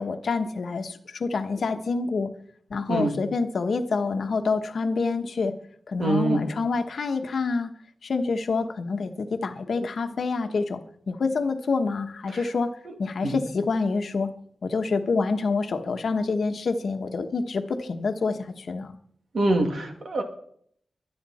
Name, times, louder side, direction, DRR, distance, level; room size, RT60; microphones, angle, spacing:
voice 1, 0.0-2.3 2.7-5.5 5.9-7.7 8.0-12.7 13.0-14.3 14.6-19.0, left 4 dB, 60° left, 6 dB, 1.2 m, -27 dB
voice 2, 6.0-6.4 13.2-13.4 19.3-20.2, right 2 dB, 55° right, 4 dB, 2.3 m, -24 dB
23.5 x 8.9 x 4.2 m, 0.65 s
wide cardioid pair, 170°, 0 cm